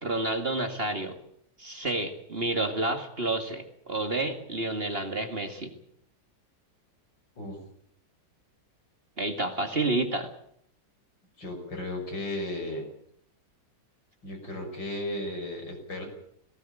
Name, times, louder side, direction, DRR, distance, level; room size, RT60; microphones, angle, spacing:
voice 1, 0.0-1.2 1.6-5.7 9.2-10.3, right 2 dB, 30° right, 5 dB, 2.1 m, -29 dB
voice 2, 11.4-12.9 14.2-16.0, left 1 dB, 75° left, 2 dB, 6.8 m, -35 dB
18.5 x 18.0 x 9.1 m, 0.69 s
omnidirectional pair, 2.0 m